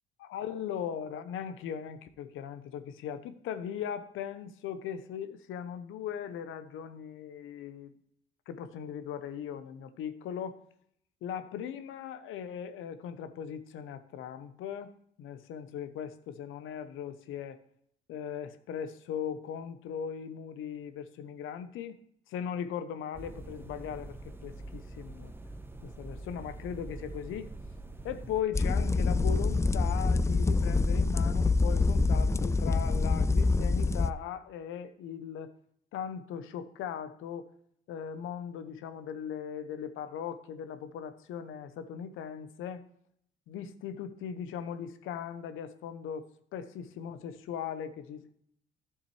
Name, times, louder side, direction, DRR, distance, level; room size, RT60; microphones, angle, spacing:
voice 1, 0.3-7.9 8.5-10.6 11.2-14.9 15.2-17.6 18.1-22.0 22.3-25.3 25.8-27.5 28.0-35.5 35.9-37.5 37.9-42.8 43.5-46.3 46.5-48.3, left 8 dB, 85° left, 11 dB, 0.8 m, -39 dB
sound 1, 23.1-28.4, right 2 dB, 10° right, 1.0 m, -45 dB
sound 2, 28.5-34.1, left 3 dB, 15° left, 0.4 m, -26 dB
11.5 x 7.2 x 3.2 m, 0.69 s
cardioid pair, 90°, 20 cm